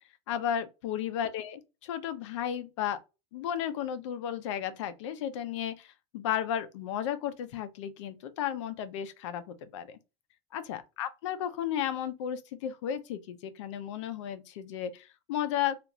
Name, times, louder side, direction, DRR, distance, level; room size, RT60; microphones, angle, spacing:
voice 1, 0.3-3.0 3.3-10.0 10.5-15.8, left 10 dB, 85° left, 0.5 m, -34 dB
3.0 x 2.5 x 2.5 m
supercardioid pair, 165°, 15 cm